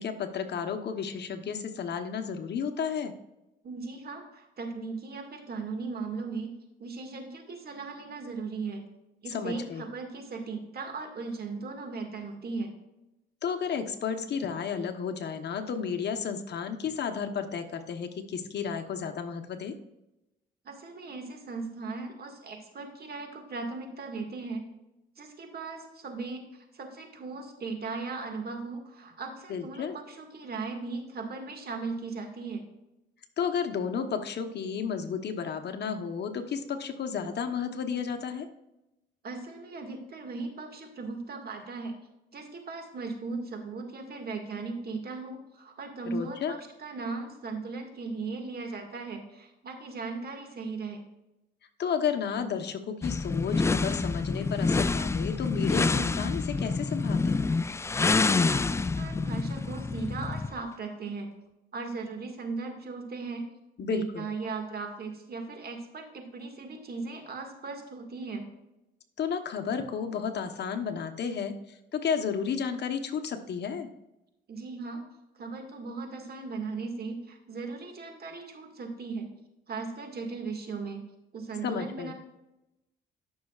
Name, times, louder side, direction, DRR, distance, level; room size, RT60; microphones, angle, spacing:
voice 1, 0.0-3.1 9.3-9.9 13.4-19.7 29.5-29.9 33.4-38.5 46.0-46.5 51.8-57.5 63.8-64.3 69.2-73.9 81.6-82.1, left 6 dB, 60° left, 6 dB, 1.1 m, -32 dB
voice 2, 3.6-6.5 6.8-8.8 9.2-12.7 20.6-24.7 25.2-32.6 39.2-42.0 42.3-51.0 58.2-61.3 61.7-63.5 63.9-68.5 74.5-75.0 75.4-79.3 79.7-81.0 81.3-82.1, right 4 dB, 50° right, 4 dB, 2.0 m, -37 dB
sound 1, 53.0-60.6, left 3 dB, 15° left, 0.3 m, -27 dB
13.5 x 6.4 x 2.4 m, 0.93 s
cardioid pair, 90°, 20 cm